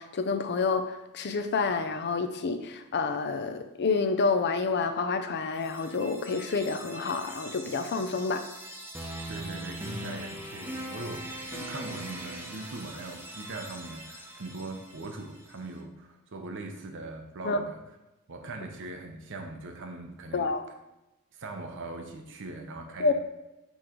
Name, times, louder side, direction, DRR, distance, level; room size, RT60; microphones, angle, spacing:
voice 1, 0.0-8.4 11.5-11.6 17.4-17.6 20.3-20.6 23.0-23.1, left 4 dB, 50° left, 8 dB, 0.6 m, -28 dB
sound 1, 5.5-15.5, right 1 dB, 10° right, 0.8 m, -41 dB
voice 2, 9.3-11.3 11.7-17.8 18.3-20.5 21.3-23.1, right 2 dB, 60° right, 4 dB, 0.8 m, -40 dB
8.1 x 3.2 x 3.7 m, 0.98 s
head